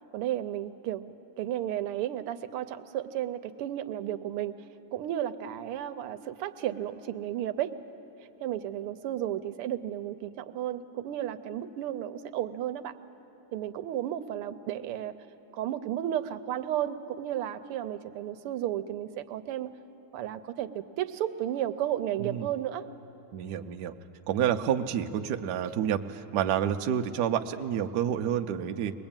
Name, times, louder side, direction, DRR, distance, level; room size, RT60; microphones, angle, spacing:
voice 1, 0.1-4.6 4.9-7.8 8.4-12.9 13.5-15.1 15.5-19.7 20.1-22.9, right 11 dB, 85° right, 11 dB, 1.6 m, -33 dB
voice 2, 23.3-23.9 24.3-29.0, right 9 dB, 65° right, 6 dB, 1.1 m, -29 dB
22.0 x 20.5 x 8.9 m, 2.9 s
omnidirectional pair, 2.4 m